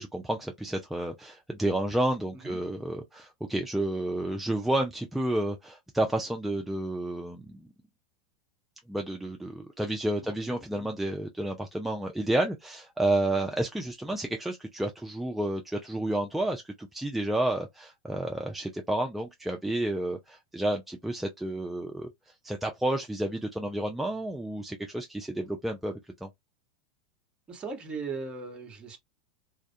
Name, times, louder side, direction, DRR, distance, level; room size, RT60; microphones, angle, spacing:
voice 1, 0.0-7.7 8.9-22.1 22.4-25.9 26.2-26.3, right 1 dB, 5° right, 0.4 m, -30 dB
voice 2, 27.5-29.0, right 4 dB, 25° right, 1.0 m, -37 dB
2.2 x 2.1 x 2.6 m
hypercardioid pair, 100°, 4 cm